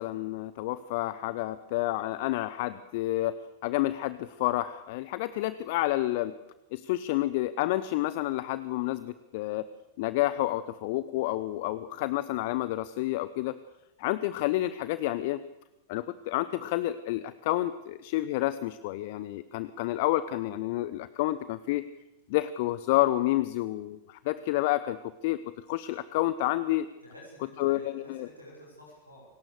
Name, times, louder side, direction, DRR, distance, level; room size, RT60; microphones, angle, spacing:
voice 1, 0.0-6.3 6.7-9.7 10.0-13.6 14.0-15.4 15.9-21.8 22.3-25.0 25.2-25.4 25.7-26.9 27.6-28.3, left 16 dB, 50° left, 15 dB, 0.8 m, -29 dB
voice 2, 27.0-29.3, left 1 dB, 90° left, -3 dB, 6.7 m, -51 dB
27.5 x 18.5 x 6.7 m, 0.99 s
figure-of-eight pair, 90°, 0 cm